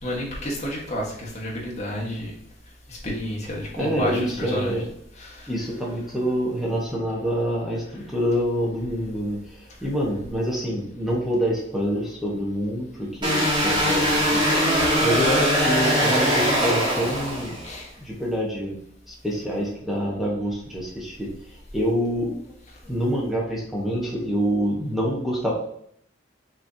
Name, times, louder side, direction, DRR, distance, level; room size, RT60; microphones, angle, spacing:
voice 1, 0.0-2.3 2.9-4.8 5.1-5.6 17.6-17.9, equal, 35° left, -3 dB, 1.3 m, -30 dB
voice 2, 3.8-4.9 5.5-14.4 15.0-17.6 18.0-18.8 19.1-21.3 21.7-22.3 22.8-25.5, equal, ahead, -4 dB, 1.1 m, -26 dB
sound 1, 13.2-17.8, equal, 25° right, 1.6 m, -21 dB
6.1 x 3.1 x 2.7 m, 0.69 s
head